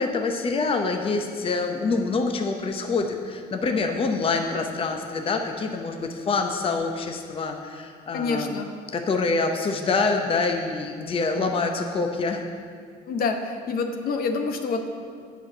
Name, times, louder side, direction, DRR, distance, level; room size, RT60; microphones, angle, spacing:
voice 1, 0.0-8.6 8.9-12.4, left 4 dB, 35° left, 4 dB, 0.8 m, -26 dB
voice 2, 8.1-8.7 13.1-14.9, left 4 dB, 60° left, 5 dB, 1.0 m, -27 dB
8.4 x 6.0 x 8.1 m, 2.1 s
cardioid pair, 110°, 17 cm